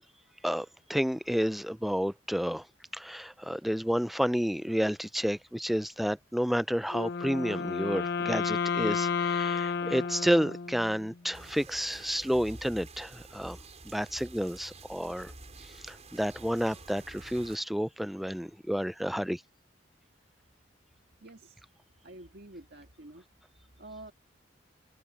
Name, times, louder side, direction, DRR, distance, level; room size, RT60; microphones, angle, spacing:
voice 1, 0.4-2.7 2.9-13.6 13.8-15.3 15.8-19.4, equal, ahead, 0.4 m, -30 dB
Wind instrument woodwind instrument, 6.9-11.1, left 6 dB, 60° left, 0.7 m, -31 dB
sound 1, 11.3-17.6, right 2 dB, 40° right, 5.8 m, -49 dB
voice 2, 21.2-21.6 22.0-23.2 23.8-24.1, right 2 dB, 60° right, 1.7 m, -48 dB
head